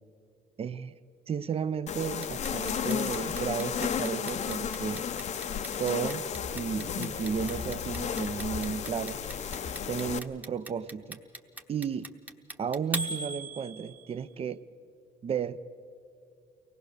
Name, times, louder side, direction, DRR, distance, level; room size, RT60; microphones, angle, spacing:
voice 1, 0.6-0.9 1.3-5.1 5.8-6.3 6.5-9.2 9.9-11.2 11.7-12.1 12.6-14.6 15.2-15.6, right 7 dB, 35° right, 14 dB, 0.6 m, -33 dB
sound 1, 1.9-10.2, left 7 dB, 45° left, 0.7 m, -33 dB
Clock, 2.2-14.2, right 2 dB, 10° right, 1.0 m, -39 dB
23.5 x 18.0 x 6.7 m, 2.4 s
cardioid pair, 110°, 17 cm